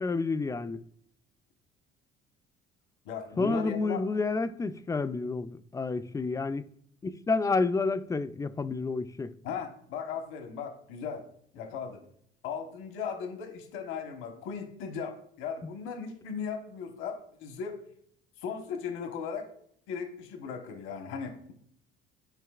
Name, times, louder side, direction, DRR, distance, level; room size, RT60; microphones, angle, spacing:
voice 1, 0.0-0.8 3.4-6.6 7.0-9.3, left 3 dB, 15° left, 0.4 m, -29 dB
voice 2, 3.0-4.0 9.4-11.2 11.5-12.0 12.4-17.8 18.4-19.5 19.9-21.5, left 6 dB, 80° left, 1.2 m, -37 dB
12.5 x 5.0 x 2.4 m
cardioid pair, 115°, 21 cm